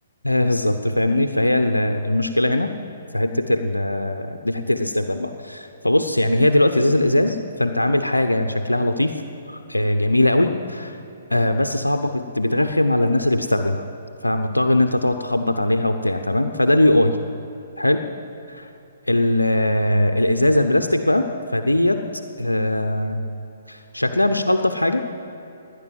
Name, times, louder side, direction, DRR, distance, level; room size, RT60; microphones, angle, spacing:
voice 1, 0.2-2.7 3.1-9.1 9.5-11.0 11.3-13.8 14.2-17.2 17.8-18.0 18.5-18.7 19.1-22.0 22.4-23.2 23.7-25.0, left 1 dB, 90° left, 7 dB, 0.7 m, -20 dB
17.5 x 10.0 x 7.5 m, 2.8 s
figure-of-eight pair, 125°, 0 cm